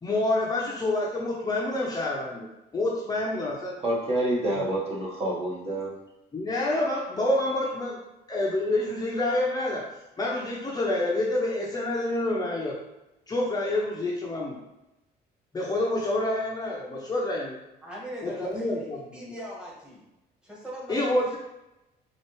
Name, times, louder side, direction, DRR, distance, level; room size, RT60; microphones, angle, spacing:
voice 1, 0.0-2.5 2.7-3.8 4.5-4.6 6.3-8.0 8.3-9.9 10.2-12.8 13.3-14.6 15.5-17.6 18.2-19.3 20.9-21.4, left 2 dB, 25° left, -3 dB, 0.6 m, -27 dB
voice 2, 3.8-5.9, right 1 dB, 35° right, -4 dB, 1.2 m, -27 dB
voice 3, 17.8-18.9 19.1-20.0 20.4-21.4, equal, 5° right, -6 dB, 1.4 m, -40 dB
4.3 x 2.4 x 3.1 m, 0.93 s
cardioid pair, 110°, 17 cm